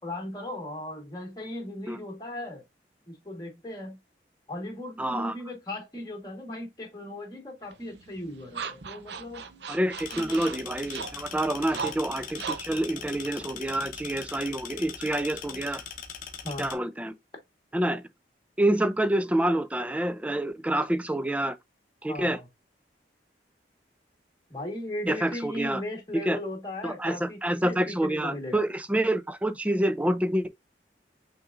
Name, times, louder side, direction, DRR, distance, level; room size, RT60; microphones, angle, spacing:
voice 1, 0.0-2.6 3.1-4.0 4.5-9.4 10.1-10.4 11.7-11.9 16.4-16.7 22.1-22.5 24.5-28.6, left 1 dB, 20° left, 1.4 m, -37 dB
voice 2, 5.0-5.3 9.7-15.8 16.6-17.1 17.7-18.0 18.6-21.6 22.0-22.4 25.1-25.8 26.3-26.4 26.8-30.5, right 1 dB, 10° right, 0.4 m, -27 dB
sound 1, 7.7-14.2, right 6 dB, 75° right, 0.6 m, -40 dB
sound 2, 10.0-16.7, left 7 dB, 50° left, 0.8 m, -41 dB
5.7 x 3.6 x 2.5 m
head